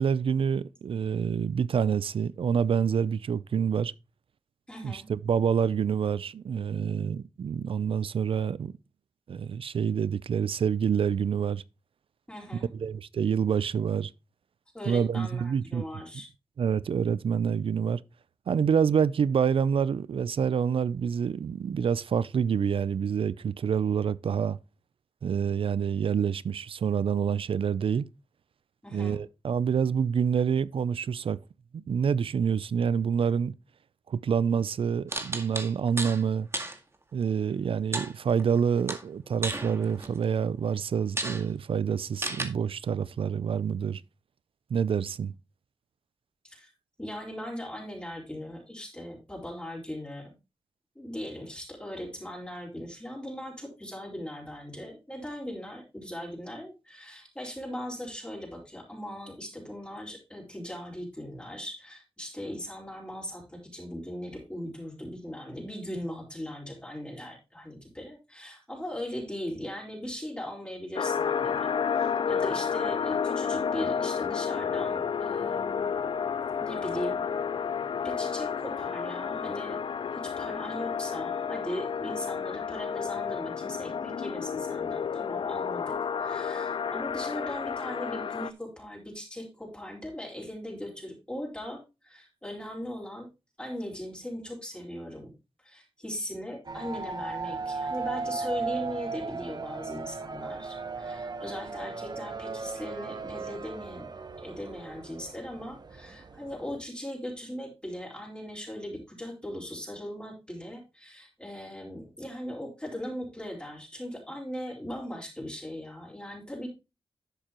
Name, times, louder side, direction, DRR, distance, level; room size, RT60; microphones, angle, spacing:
voice 1, 0.0-3.9 4.8-8.7 9.3-11.6 12.7-14.1 14.9-15.8 16.6-18.0 18.5-24.6 25.2-28.1 28.9-31.4 31.7-33.5 34.1-36.5 37.1-44.0 44.7-45.3, right 7 dB, 80° right, 0.5 m, -27 dB
voice 2, 4.7-5.1 12.3-12.7 14.7-16.3 28.8-29.2 46.4-46.7 47.0-50.3 50.9-75.9 76.6-77.2 78.0-79.8 80.1-93.3 93.6-95.3 95.6-104.1 104.4-116.7, equal, 10° left, 4.5 m, -39 dB
sound 1, 35.1-36.2 36.5-36.8 37.9-38.6 38.9-40.2 40.7-40.8 41.2-41.4 42.2-42.5, right 2 dB, 30° right, 2.0 m, -33 dB
sound 2, 71.0-88.5, left 6 dB, 65° left, 0.5 m, -31 dB
sound 3, 96.6-106.8, right 4 dB, 50° right, 1.1 m, -37 dB
11.5 x 7.4 x 3.0 m
cardioid pair, 70°, 9 cm